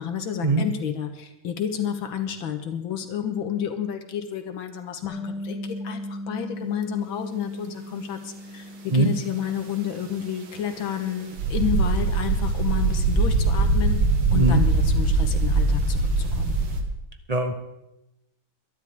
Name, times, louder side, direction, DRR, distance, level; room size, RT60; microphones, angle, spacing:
voice 1, 0.0-14.0 14.3-16.6, left 9 dB, 85° left, 6 dB, 2.1 m, -30 dB
Bass guitar, 5.0-11.3, left 1 dB, 60° right, 2.1 m, -38 dB
sound 1, 11.4-16.8, right 3 dB, 85° right, 2.3 m, -22 dB
voice 2, 14.3-14.6 17.3-17.5, right 2 dB, 35° right, 6 dB, 0.6 m, -20 dB
22.5 x 11.5 x 3.6 m, 0.89 s
omnidirectional pair, 2.1 m